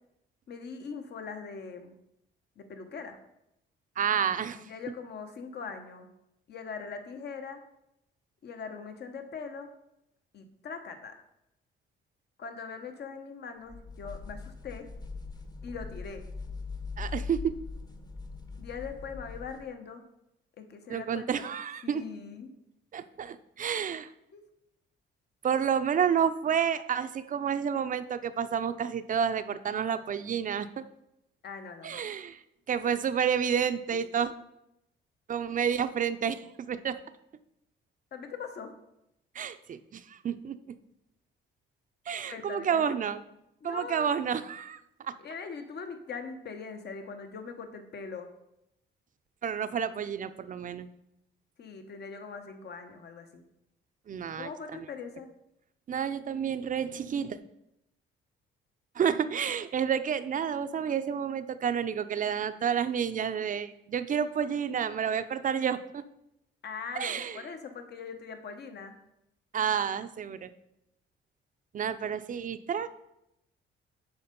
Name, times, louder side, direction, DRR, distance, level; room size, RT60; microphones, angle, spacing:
voice 1, 0.5-2.0 2.6-3.2 4.5-6.1 6.5-7.6 8.4-9.7 10.3-11.2 12.4-14.9 15.6-16.2 18.6-20.0 20.6-21.4 21.8-22.5 24.3-24.4 31.4-32.1 33.9-34.0 38.1-38.7 42.3-43.1 43.6-44.1 45.2-48.3 51.6-53.4 54.4-55.3 66.6-69.0, left 5 dB, 55° left, 7 dB, 1.0 m, -41 dB
voice 2, 4.0-4.6 17.0-17.5 20.9-22.0 22.9-24.1 25.4-30.8 31.8-32.4 32.7-34.3 35.3-36.9 39.3-40.8 42.1-43.2 43.6-45.1 49.4-50.9 54.1-54.5 55.9-57.4 59.0-66.0 67.0-67.4 69.5-70.5 71.7-72.9, right 7 dB, 40° right, 11 dB, 0.5 m, -30 dB
sound 1, 13.7-19.7, left 4 dB, 20° left, 0.8 m, -41 dB
7.0 x 4.5 x 5.3 m, 0.83 s
cardioid pair, 90°, 20 cm